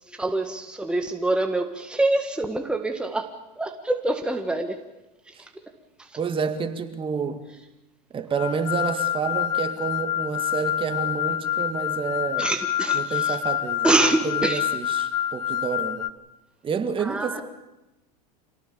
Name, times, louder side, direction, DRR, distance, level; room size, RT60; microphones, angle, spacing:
voice 1, 0.2-3.3 3.6-4.8 12.4-13.4 13.8-14.6 17.0-17.4, right 2 dB, 5° right, 1.7 m, -25 dB
voice 2, 6.2-7.4 8.1-12.5 12.9-16.1 16.6-17.4, right 6 dB, 25° right, 2.0 m, -29 dB
sound 1, 8.4-16.1, left 11 dB, 80° left, 1.0 m, -27 dB
26.5 x 18.0 x 7.2 m
hypercardioid pair, 105°, 20 cm